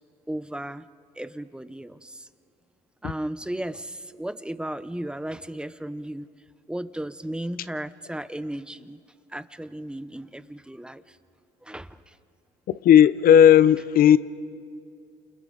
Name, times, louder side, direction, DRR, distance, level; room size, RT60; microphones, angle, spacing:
voice 1, 0.3-0.9 1.1-2.3 3.0-6.3 6.7-9.0 9.3-11.2 11.6-12.2, right 1 dB, 5° right, 0.7 m, -35 dB
voice 2, 12.8-14.2, left 9 dB, 60° left, 0.7 m, -14 dB
29.5 x 28.5 x 3.9 m
cardioid pair, 110°, 17 cm